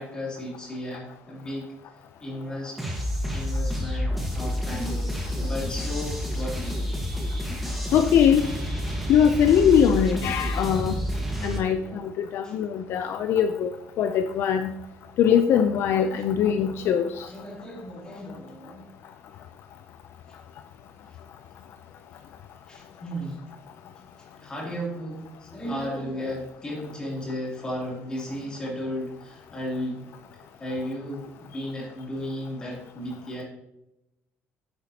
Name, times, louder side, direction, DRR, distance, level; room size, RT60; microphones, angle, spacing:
voice 1, 0.0-1.7 2.2-2.8 3.3-7.0 11.8-12.1 12.4-12.6 17.3-18.9 22.7-23.4 24.2-31.2 31.5-33.4, equal, 15° left, -3 dB, 2.8 m, -35 dB
sound 1, 2.8-11.6, equal, ahead, 1.4 m, -29 dB
voice 2, 7.9-8.5 9.1-10.9 11.4-13.7 14.0-14.7 15.2-17.3, left 8 dB, 55° left, 8 dB, 0.5 m, -21 dB
9.5 x 8.7 x 2.8 m, 0.91 s
cardioid pair, 175°, 5 cm